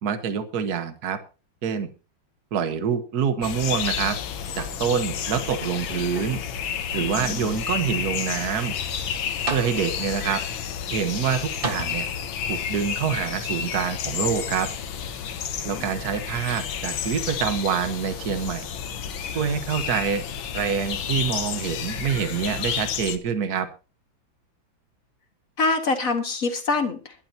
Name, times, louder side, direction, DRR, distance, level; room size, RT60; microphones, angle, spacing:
voice 1, 0.0-1.2 1.6-1.9 2.5-4.2 4.6-6.4 6.9-8.7 9.5-10.4 10.9-12.1 12.5-14.7 15.6-18.7 19.3-20.2 20.5-23.7, right 7 dB, 55° right, 10 dB, 1.7 m, -26 dB
sound 1, 3.4-23.2, left 8 dB, 85° left, 1.8 m, -31 dB
sound 2, 4.5-5.2 5.6-6.6 7.3-7.4 9.0-9.1 9.5-10.2 11.6-12.5 13.5-13.6, right 3 dB, 30° right, 1.6 m, -35 dB
voice 2, 7.0-7.5 15.8-15.9 25.6-27.3, left 3 dB, 45° left, 5 dB, 2.2 m, -25 dB
21.5 x 11.5 x 2.9 m, 0.33 s
omnidirectional pair, 2.1 m